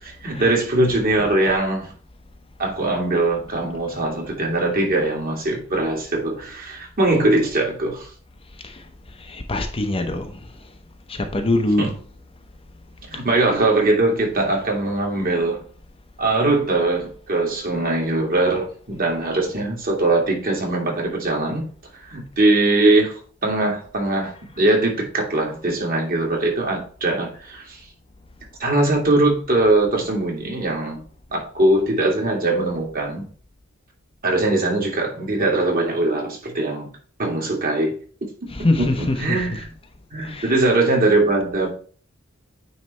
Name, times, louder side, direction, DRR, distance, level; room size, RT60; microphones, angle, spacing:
voice 1, 0.0-1.9 2.6-8.1 11.8-11.9 13.1-15.6 16.2-21.6 22.0-27.8 28.6-31.0 31.3-33.3 34.2-36.9 37.2-38.0 38.4-38.5 38.8-39.7 40.1-41.7, right 2 dB, 45° right, 2.2 m, -21 dB
voice 2, 9.2-10.4 11.1-12.0 24.6-24.7 38.5-39.5 40.2-40.6, left 2 dB, 25° left, 0.7 m, -24 dB
9.3 x 3.3 x 4.3 m
head